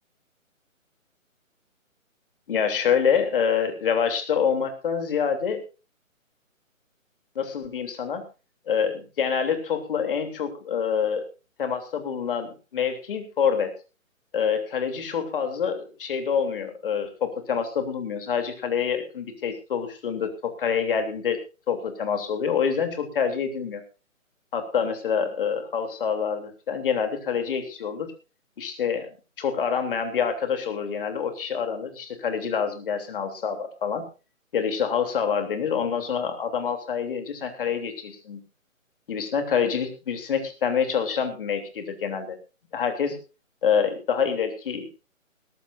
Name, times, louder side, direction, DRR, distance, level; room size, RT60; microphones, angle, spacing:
voice 1, 2.5-5.6 7.3-8.2 8.7-11.2 11.6-13.7 14.3-23.8 24.5-28.1 28.6-29.1 29.4-34.0 34.5-38.4 39.1-42.4 42.7-43.2 43.6-44.9, left 7 dB, 40° left, 6 dB, 3.2 m, -26 dB
20.5 x 14.0 x 2.6 m, 0.32 s
figure-of-eight pair, 145°, 40 cm